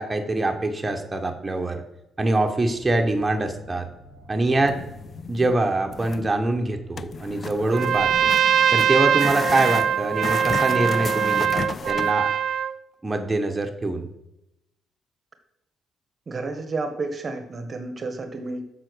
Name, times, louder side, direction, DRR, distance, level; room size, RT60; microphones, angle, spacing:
voice 1, 0.0-1.8 2.2-3.9 4.3-4.8 5.3-8.3 8.7-12.3 13.0-14.1, right 2 dB, 20° right, 4 dB, 1.1 m, -24 dB
sound 1, 2.7-9.5, equal, 85° left, 3.5 m, -49 dB
sound 2, 4.6-5.6 5.9-6.3 7.0-12.1, left 5 dB, 45° left, 0.3 m, -33 dB
Trumpet, 7.7-12.7, right 9 dB, 65° right, 0.4 m, -22 dB
voice 2, 16.3-18.7, right 3 dB, 40° right, 8 dB, 1.1 m, -31 dB
7.6 x 5.9 x 6.2 m, 0.87 s
cardioid pair, 90°, 0 cm